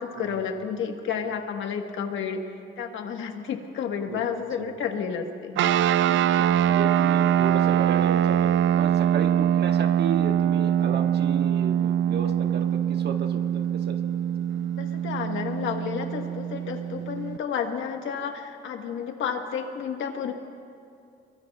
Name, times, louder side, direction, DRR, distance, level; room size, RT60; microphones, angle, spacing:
voice 1, 0.0-2.4 2.8-5.6 14.5-20.3, left 7 dB, 75° left, 4 dB, 1.4 m, -31 dB
sound 1, 5.6-17.4, right 10 dB, 75° right, 0.5 m, -23 dB
voice 2, 6.0-14.0 16.9-17.0, right 5 dB, 55° right, 5 dB, 1.3 m, -34 dB
24.0 x 23.0 x 2.3 m, 2.5 s
cardioid pair, 90°, 20 cm